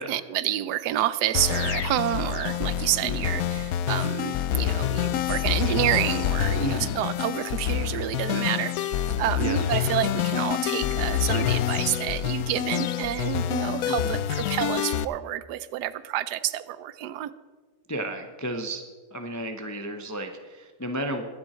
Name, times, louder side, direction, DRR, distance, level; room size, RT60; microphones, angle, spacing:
voice 1, 0.0-8.7 9.2-17.3, right 13 dB, 90° right, 15 dB, 1.2 m, -28 dB
sound 1, 1.3-15.0, left 10 dB, 70° left, 0.9 m, -27 dB
voice 2, 3.0-3.3 6.6-7.0 9.4-9.7 13.9-14.1 17.9-18.8 19.1-21.2, right 1 dB, 20° left, 5 dB, 0.4 m, -33 dB
22.0 x 7.7 x 4.3 m, 1.4 s
omnidirectional pair, 1.7 m